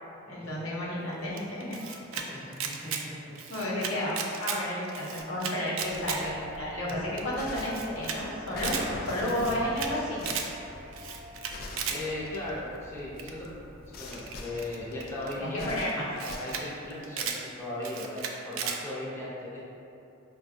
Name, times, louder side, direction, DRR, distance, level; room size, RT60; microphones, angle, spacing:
voice 1, 0.3-1.8 2.1-2.2 3.5-10.4 15.3-16.1, left 1 dB, 80° left, -7 dB, 0.9 m, -32 dB
sound 1, 1.1-1.3 1.7-2.1 3.8-3.9 4.4-5.2 5.8-5.9 7.4-13.0 13.9-17.4, left 2 dB, 50° left, 0.3 m, -43 dB
Camera, 1.4-2.2 2.5-3.0 3.3-4.6 4.9-6.2 6.5-6.6 6.9-7.0 7.2-7.3 7.6-8.2 8.5-8.8 9.2-9.9 10.2-10.5 10.9-12.0 13.2-13.5 14.1-15.3 15.9-16.6 16.9-17.4 17.8-18.8, right 7 dB, 75° right, 0.3 m, -35 dB
voice 2, 2.3-2.9 3.3-3.8 11.4-11.5 11.9-13.6 13.9-15.8 16.2-19.7, left 1 dB, 15° left, -8 dB, 0.6 m, -38 dB
sound 2, 5.8-15.4, equal, 35° right, 0.9 m, -46 dB
5.1 x 2.3 x 2.6 m, 2.7 s
head